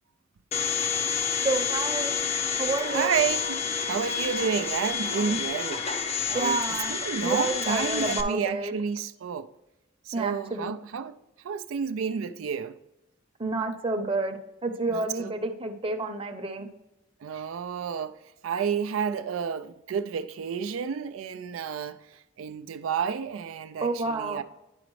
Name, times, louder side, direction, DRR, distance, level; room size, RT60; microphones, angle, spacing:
Domestic sounds home sounds, 0.5-8.2, left 6 dB, 30° left, 0.5 m, -29 dB
voice 1, 1.4-2.2 2.6-3.1 5.3-5.4 6.3-6.9 7.2-8.7 10.1-10.7 13.4-16.7 23.8-24.4, right 3 dB, 25° right, 0.7 m, -29 dB
voice 2, 2.9-3.6 3.9-9.5 10.1-11.2 11.4-12.8 14.9-15.3 17.2-24.4, right 7 dB, 90° right, 0.4 m, -31 dB
10.5 x 5.0 x 3.1 m
head